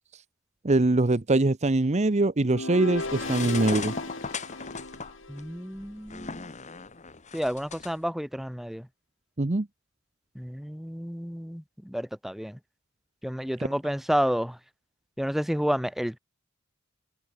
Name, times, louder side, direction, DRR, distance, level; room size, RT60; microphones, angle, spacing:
voice 1, 0.6-3.9 9.4-9.7, right 2 dB, 35° right, 0.8 m, -23 dB
sound 1, 2.4-5.7, left 2 dB, 65° left, 6.1 m, -36 dB
sound 2, 2.9-7.9, left 4 dB, 35° left, 1.9 m, -38 dB
voice 2, 5.3-6.5 7.3-8.9 10.4-12.6 13.2-14.6 15.2-16.2, equal, ahead, 2.1 m, -30 dB
head